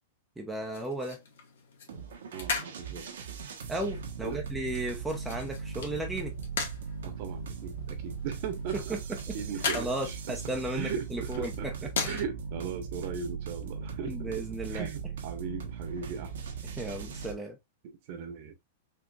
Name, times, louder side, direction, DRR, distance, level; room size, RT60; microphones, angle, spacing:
voice 1, 0.4-1.2 3.7-6.3 8.7-9.0 9.7-11.9 14.1-14.9 16.8-17.6, right 1 dB, 5° right, 0.6 m, -35 dB
sound 1, 0.7-12.2, left 5 dB, 75° left, 1.4 m, -40 dB
sound 2, 1.9-17.3, right 5 dB, 80° right, 1.1 m, -39 dB
voice 2, 2.3-3.0 4.2-4.4 7.0-9.0 9.3-10.1 10.7-16.3 17.8-18.6, right 7 dB, 45° right, 1.0 m, -38 dB
4.4 x 2.8 x 2.4 m
supercardioid pair, 155°, 0 cm